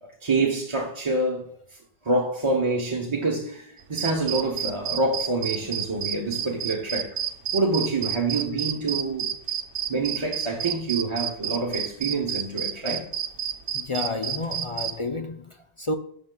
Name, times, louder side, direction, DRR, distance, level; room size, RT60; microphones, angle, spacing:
voice 1, 0.0-1.5 2.0-7.2 7.5-9.3 9.9-13.1, right 2 dB, 30° right, 0.8 m, -26 dB
sound 1, 3.8-14.9, right 9 dB, 65° right, 0.8 m, -29 dB
voice 2, 13.7-15.9, left 2 dB, 45° left, 0.4 m, -30 dB
12.0 x 6.0 x 2.2 m
omnidirectional pair, 1.0 m